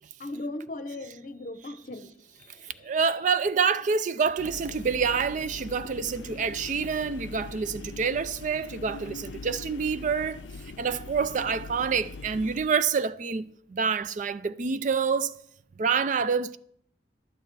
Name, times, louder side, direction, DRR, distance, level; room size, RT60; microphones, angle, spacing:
voice 1, 0.2-3.0 11.3-11.6, left 2 dB, 45° left, 0.8 m, -39 dB
voice 2, 2.8-10.4 10.8-15.3 15.8-16.6, right 5 dB, 45° right, 0.4 m, -27 dB
sound 1, 4.4-12.7, left 3 dB, 85° left, 0.4 m, -42 dB
12.0 x 9.0 x 4.6 m
head